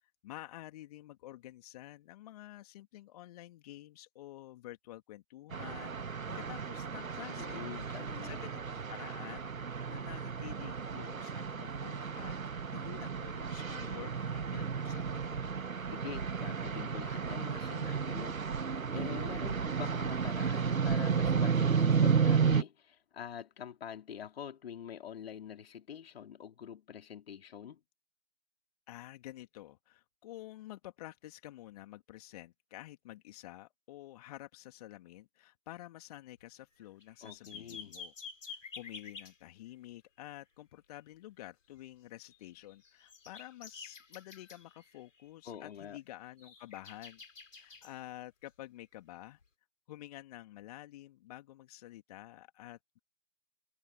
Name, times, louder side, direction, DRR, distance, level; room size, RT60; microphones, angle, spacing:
voice 1, 0.0-7.7 8.2-9.5 9.8-15.7 28.9-38.1 38.4-47.2 47.5-49.4 49.9-53.0, left 15 dB, 25° left, 2.3 m, -50 dB
sound 1, 5.5-22.6, right 6 dB, 75° right, 1.4 m, -33 dB
voice 2, 7.3-8.4 15.9-27.8 37.2-38.0 45.5-46.0, left 8 dB, 45° left, 3.1 m, -46 dB
sound 2, 36.4-36.5 36.8-39.4 42.3-45.2 45.5-45.8 46.2-47.9 49.4-49.5, left 5 dB, 65° left, 7.6 m, -50 dB
figure-of-eight pair, 140°, 42 cm